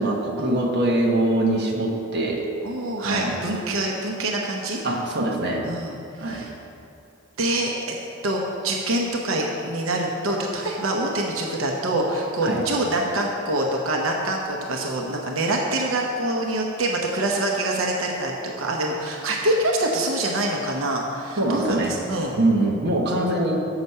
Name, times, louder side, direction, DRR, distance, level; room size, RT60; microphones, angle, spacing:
voice 1, 0.0-2.5 3.0-3.4 4.8-5.7 6.2-6.5 12.4-12.6 21.4-21.9 22.4-23.6, right 1 dB, 55° right, -1 dB, 1.2 m, -23 dB
voice 2, 2.6-4.8 5.6-6.5 7.4-7.7 8.2-22.3, right 1 dB, 90° right, 0 dB, 0.9 m, -25 dB
8.1 x 5.9 x 5.5 m, 2.7 s
head